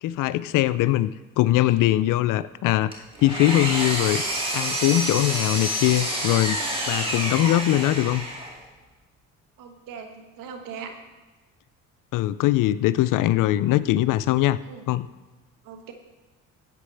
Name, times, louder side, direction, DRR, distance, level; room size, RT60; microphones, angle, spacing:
voice 1, 0.0-2.9 3.2-4.2 4.5-8.3 12.1-14.6 14.9-15.1, left 14 dB, 70° left, 16 dB, 0.5 m, -22 dB
Engine, 2.9-8.6, right 1 dB, 15° right, 2.3 m, -28 dB
voice 2, 9.6-10.9 14.7-14.8 15.6-15.9, right 6 dB, 75° right, 5 dB, 1.4 m, -39 dB
12.0 x 8.3 x 3.3 m, 1.2 s
supercardioid pair, 80°, 33 cm